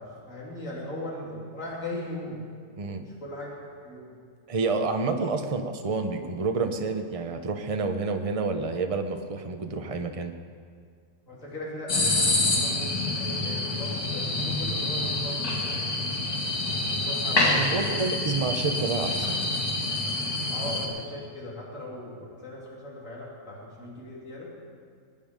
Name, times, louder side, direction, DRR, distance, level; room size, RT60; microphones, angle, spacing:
voice 1, 0.0-2.4 2.9-3.5 3.8-4.1 11.3-15.8 16.8-18.0 20.5-24.5, left 1 dB, 55° left, -5 dB, 3.6 m, -38 dB
voice 2, 4.5-10.3 17.5-19.4, right 4 dB, 30° right, 6 dB, 0.8 m, -29 dB
sound 1, 11.9-20.9, left 2 dB, 75° left, 2.4 m, -27 dB
22.5 x 9.5 x 5.2 m, 2.1 s
omnidirectional pair, 1.6 m